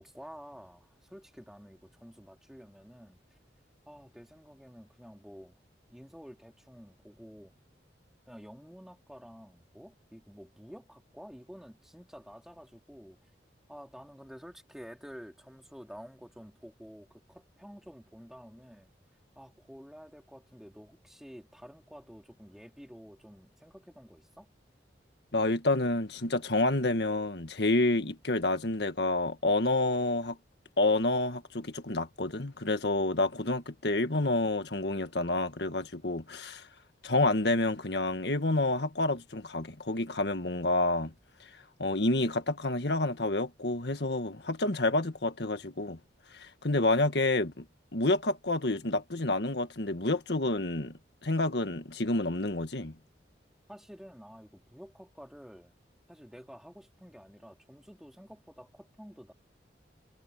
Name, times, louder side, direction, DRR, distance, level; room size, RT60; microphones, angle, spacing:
voice 1, 0.0-3.2 3.9-5.6 5.9-7.6 8.3-13.2 13.7-18.9 19.4-24.5 53.7-55.7 56.1-59.3, equal, ahead, 3.6 m, -50 dB
voice 2, 25.3-30.4 30.8-36.6 37.0-41.1 41.8-46.0 46.3-47.7 47.9-50.9 51.2-52.9, left 2 dB, 70° left, 1.7 m, -29 dB
head